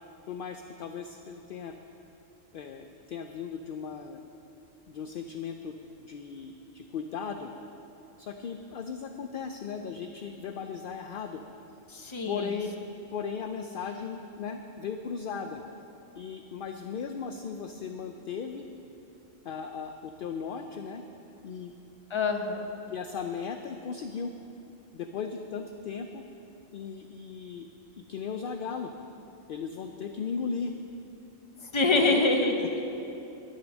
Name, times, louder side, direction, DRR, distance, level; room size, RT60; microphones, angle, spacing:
voice 1, 0.3-1.8 2.5-4.2 4.9-7.5 8.2-11.4 12.3-12.7 13.1-15.6 16.2-18.7 19.4-21.0 21.4-21.7 22.9-24.3 24.9-26.2 26.7-27.7 28.0-28.9 29.5-30.7 31.9-32.2 32.6-32.8, left 6 dB, 60° left, 6 dB, 0.6 m, -37 dB
voice 2, 11.9-12.5 22.1-22.7 31.6-32.5, left 3 dB, 25° left, 4 dB, 0.8 m, -25 dB
11.0 x 9.5 x 6.3 m, 3.0 s
omnidirectional pair, 1.3 m